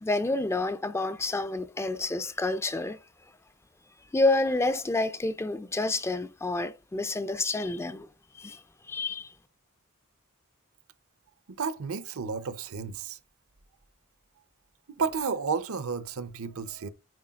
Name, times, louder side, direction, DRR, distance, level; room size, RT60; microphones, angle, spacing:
voice 1, 0.0-3.0 4.1-8.1 8.4-8.6 8.9-9.3, left 2 dB, 10° left, 0.3 m, -28 dB
voice 2, 11.6-13.2 14.9-16.9, right 5 dB, 70° right, 0.6 m, -32 dB
9.5 x 4.5 x 2.4 m
head